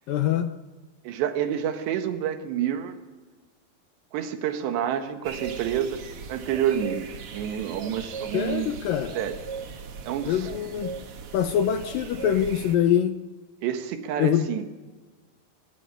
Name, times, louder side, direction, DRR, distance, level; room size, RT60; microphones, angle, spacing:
voice 1, 0.1-0.5 8.3-9.2 10.3-10.9 11.3-13.2 14.2-14.5, left 10 dB, 75° left, 8 dB, 2.1 m, -24 dB
voice 2, 1.1-3.0 4.1-6.0 6.3-8.7 9.2-9.4 10.1-10.5 13.6-14.7, right 10 dB, 80° right, 7 dB, 3.6 m, -28 dB
sound 1, 5.2-12.7, right 5 dB, 60° right, 1.5 m, -39 dB
28.0 x 13.0 x 9.1 m, 1.3 s
omnidirectional pair, 4.9 m